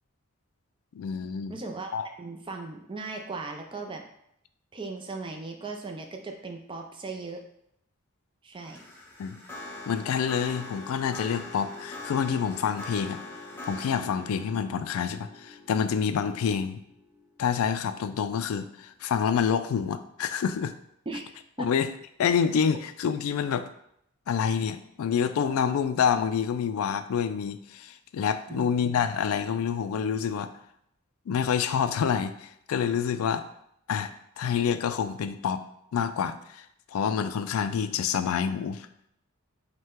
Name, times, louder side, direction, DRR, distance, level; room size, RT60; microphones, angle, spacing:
voice 1, 1.0-1.6 1.9-2.1 9.2-9.4 9.9-13.2 13.7-16.8 17.4-20.7 21.6-21.9 22.2-23.7 24.3-30.5 31.3-33.5 33.9-35.6 35.9-36.6 36.9-38.9, left 7 dB, 75° left, 11 dB, 0.3 m, -27 dB
voice 2, 1.5-4.0 4.7-7.4 8.4-8.8 21.1-21.2 21.6-21.7 28.5-28.7, right 3 dB, 20° right, 4 dB, 0.4 m, -37 dB
sound 1, 8.6-17.9, left 2 dB, 10° left, 0.7 m, -43 dB
5.3 x 2.2 x 3.6 m, 0.75 s
head